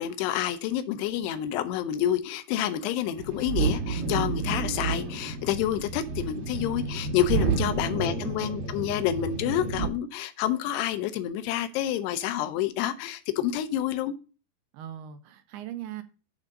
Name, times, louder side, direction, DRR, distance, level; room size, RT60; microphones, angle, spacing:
voice 1, 0.0-14.1, left 11 dB, 85° left, 2.8 m, -28 dB
sound 1, 3.2-9.9, right 4 dB, 65° right, 2.7 m, -30 dB
voice 2, 7.6-8.3 14.7-16.0, right 10 dB, 80° right, 2.6 m, -39 dB
8.4 x 3.9 x 6.4 m
omnidirectional pair, 4.7 m